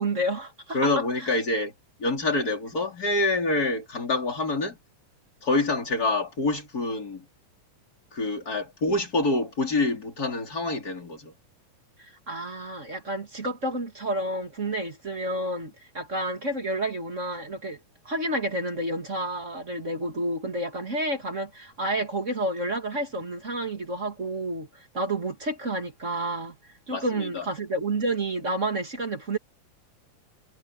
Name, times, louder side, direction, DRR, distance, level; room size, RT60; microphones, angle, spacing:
voice 1, 0.0-1.3 12.0-17.8 18.0-26.6 26.9-29.4, right 1 dB, 25° right, 2.0 m, -30 dB
voice 2, 0.7-1.7 2.0-4.8 5.4-7.3 8.1-11.3 26.9-27.5, left 2 dB, 25° left, 4.9 m, -26 dB
omnidirectional pair, 4.0 m